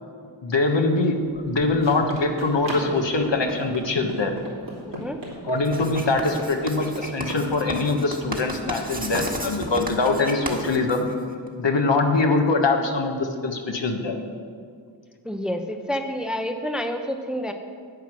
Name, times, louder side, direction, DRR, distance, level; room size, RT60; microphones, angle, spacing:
voice 1, 0.4-1.2 1.4-4.3 4.9-5.0 5.4-11.1 11.6-14.2, left 3 dB, 65° left, 4 dB, 1.3 m, -23 dB
Run, 1.3-7.5, right 2 dB, 65° right, 3.0 m, -38 dB
voice 2, 4.9-5.2 15.2-17.5, equal, ahead, 5 dB, 0.8 m, -28 dB
Writing, 5.6-11.5, right 1 dB, 20° right, 1.6 m, -33 dB
9.7 x 8.1 x 6.1 m, 2.1 s
wide cardioid pair, 50°, 47 cm